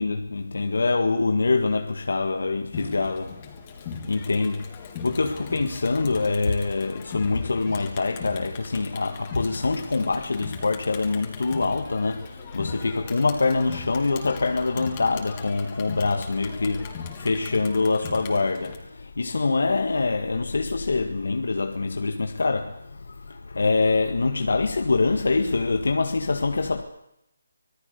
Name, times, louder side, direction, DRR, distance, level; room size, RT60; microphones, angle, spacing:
voice 1, 0.0-3.4 3.8-26.8, left 3 dB, 75° left, 1.8 m, -25 dB
Crowd, 2.7-18.8, left 6 dB, 25° left, 3.4 m, -39 dB
25.5 x 19.0 x 6.8 m
hypercardioid pair, 165°, 0 cm